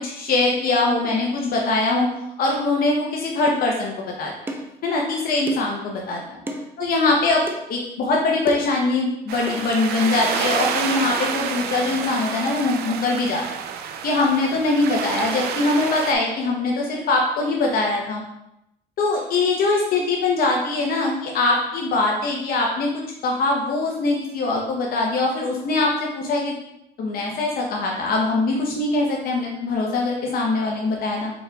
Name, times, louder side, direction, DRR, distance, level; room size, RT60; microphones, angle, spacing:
voice 1, 0.0-2.1 2.4-4.3 4.8-6.4 6.8-7.4 7.7-13.6 14.0-18.2 19.0-26.6 27.0-31.3, left 3 dB, 60° left, -1 dB, 0.8 m, -22 dB
sound 1, 3.5-3.7 4.5-4.7 5.5-5.8 6.5-6.7 7.5-7.6 8.5-8.8 9.5-9.6 10.5-10.6, right 1 dB, 10° right, 0.5 m, -31 dB
sound 2, 9.3-16.1, right 7 dB, 70° right, 0.4 m, -28 dB
4.7 x 4.1 x 2.3 m, 0.84 s
cardioid pair, 110°, 17 cm